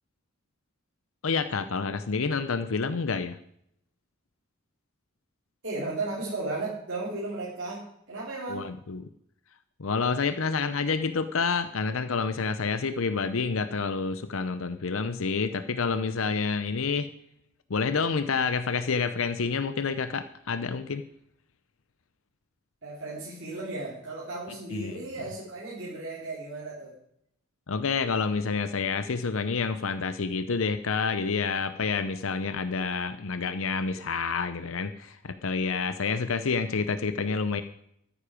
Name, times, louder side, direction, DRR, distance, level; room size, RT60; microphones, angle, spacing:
voice 1, 1.2-3.4 8.5-9.1 9.8-17.1 17.7-21.0 24.7-25.0 27.7-37.6, left 5 dB, 75° left, 11 dB, 0.7 m, -28 dB
voice 2, 5.6-8.7 22.8-26.9, right 2 dB, 55° right, -7 dB, 3.4 m, -35 dB
13.5 x 9.9 x 5.1 m, 0.72 s
head